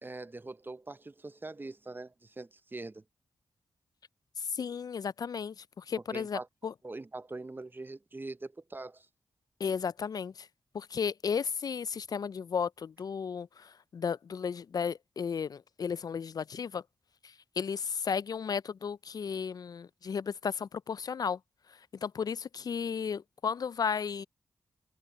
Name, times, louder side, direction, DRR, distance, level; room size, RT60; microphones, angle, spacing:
voice 1, 0.0-3.0 6.1-6.5 6.8-9.1, right 2 dB, 25° right, 0.7 m, -43 dB
voice 2, 4.4-6.7 9.6-10.5 10.7-16.8 17.2-21.4 22.0-24.3, left 6 dB, 55° left, 0.3 m, -34 dB
cardioid pair, 45°, 8 cm